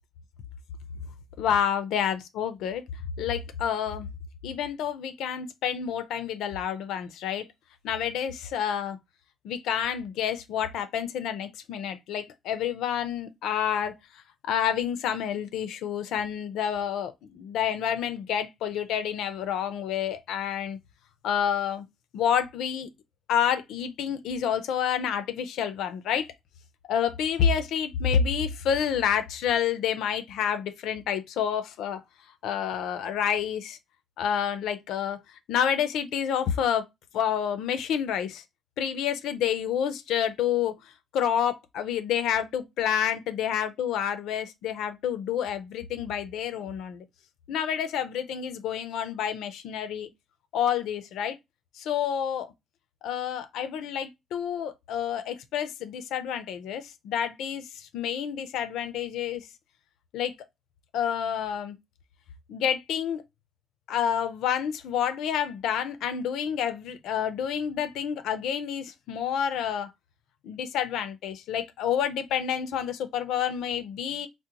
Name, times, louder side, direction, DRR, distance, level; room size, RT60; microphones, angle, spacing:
voice 1, 1.4-2.8 3.2-4.1 4.4-7.5 7.8-9.0 9.4-13.9 14.5-20.8 21.2-21.8 22.1-22.9 23.3-26.3 26.9-32.0 32.4-33.8 34.2-35.2 35.5-36.9 37.1-38.4 38.8-40.7 41.1-47.0 47.5-50.1 50.5-51.4 51.8-52.5 53.0-59.5 60.1-60.3 60.9-61.8 62.5-63.2 63.9-69.9 70.4-74.3, left 8 dB, 85° left, 0.5 m, -28 dB
3.8 x 2.1 x 2.8 m
cardioid pair, 90°, 0 cm